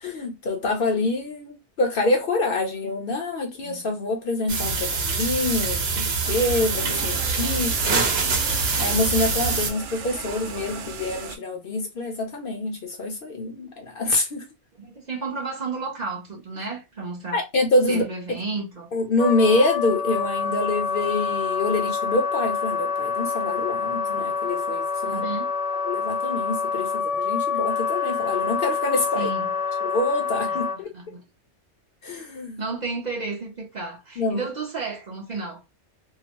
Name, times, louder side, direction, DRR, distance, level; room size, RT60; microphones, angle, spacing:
voice 1, 0.0-8.1 8.8-14.4 17.3-18.0 18.9-25.2 25.9-29.3 29.8-30.9 32.0-32.6 34.2-34.5, left 2 dB, 55° left, 0.7 m, -26 dB
sound 1, 4.5-9.7, right 4 dB, 65° right, 0.9 m, -24 dB
sound 2, 6.2-11.4, right 6 dB, 90° right, 0.9 m, -36 dB
voice 2, 14.8-17.4 17.9-18.9 25.0-25.5 29.1-29.5 30.5-30.6 30.9-31.2 32.6-35.6, right 4 dB, 45° right, 0.7 m, -32 dB
Wind instrument woodwind instrument, 19.2-30.8, left 5 dB, 80° left, 1.2 m, -27 dB
2.8 x 2.1 x 2.9 m
omnidirectional pair, 1.2 m